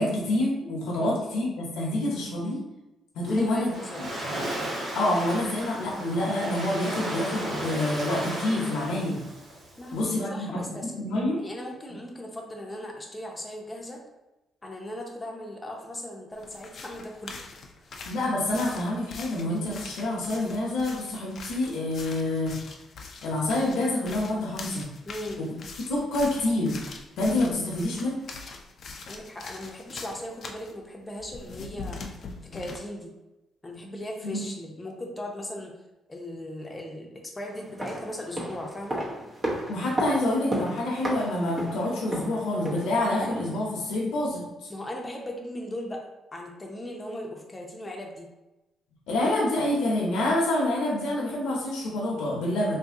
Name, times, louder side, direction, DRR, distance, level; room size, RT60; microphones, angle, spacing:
voice 1, 0.0-2.6 3.1-3.7 4.9-9.2 9.9-10.5 10.8-11.4 18.0-22.6 23.2-24.8 25.4-25.5 25.9-26.8 27.2-28.2 34.2-34.4 39.7-44.4 49.1-52.8, left 1 dB, 85° left, -4 dB, 0.8 m, -27 dB
voice 2, 3.2-4.3 9.8-11.1 11.4-14.0 14.6-17.5 17.8-17.9 25.0-25.4 29.1-32.2 32.5-33.1 33.6-35.7 36.1-39.0 44.7-46.0 46.3-48.3, left 1 dB, 20° left, 1 dB, 0.7 m, -38 dB
Waves surf, 3.2-10.0, right 1 dB, 70° right, 1.2 m, -35 dB
sound 1, 16.4-30.7 31.2-32.8, left 4 dB, 55° left, 0.4 m, -43 dB
sound 2, 37.6-43.6 43.9-44.0, right 1 dB, 30° right, 0.8 m, -33 dB
2.7 x 2.6 x 3.6 m, 0.98 s
cardioid pair, 90°, 0 cm